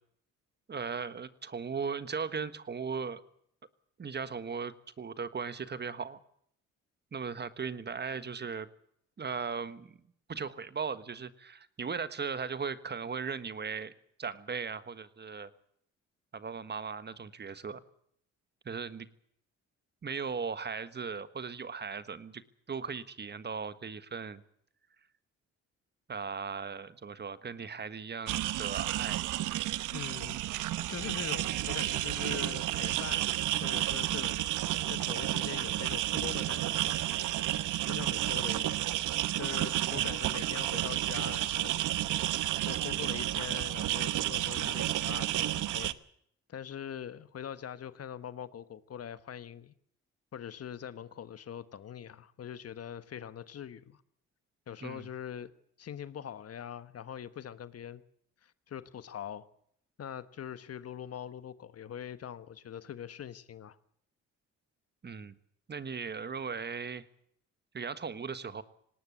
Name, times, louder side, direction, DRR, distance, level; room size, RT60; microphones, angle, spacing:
voice 1, 0.7-3.2 4.0-6.2 7.1-8.7 9.2-9.9 10.3-13.9 14.2-15.5 16.3-17.8 18.6-19.1 20.0-22.4 22.7-24.4 26.1-29.2 39.9-40.2 54.8-55.1 65.0-65.4 65.7-67.0 67.7-68.6, right 5 dB, 35° right, 13 dB, 1.5 m, -38 dB
sound 1, 28.3-45.9, right 14 dB, 85° right, 1.0 m, -31 dB
voice 2, 29.9-33.3 33.6-34.5 34.9-37.1 37.8-38.8 39.4-41.8 42.6-46.0 46.5-49.7 50.3-54.0 54.7-55.5 55.8-58.0 58.4-59.5 60.0-63.8, left 9 dB, 55° left, 13 dB, 1.3 m, -43 dB
19.0 x 18.5 x 8.2 m, 0.68 s
cardioid pair, 90°, 30 cm